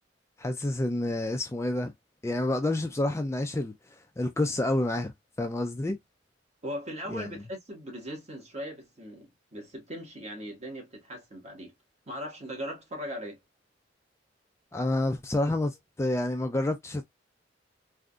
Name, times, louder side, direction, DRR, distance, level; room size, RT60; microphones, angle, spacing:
voice 1, 0.4-1.9 2.2-3.7 4.2-5.1 5.4-6.0 7.1-7.3 14.7-17.0, left 1 dB, 15° left, 0.4 m, -28 dB
voice 2, 6.6-11.7 12.1-13.4, equal, 35° right, 1.4 m, -39 dB
3.6 x 2.5 x 2.3 m
head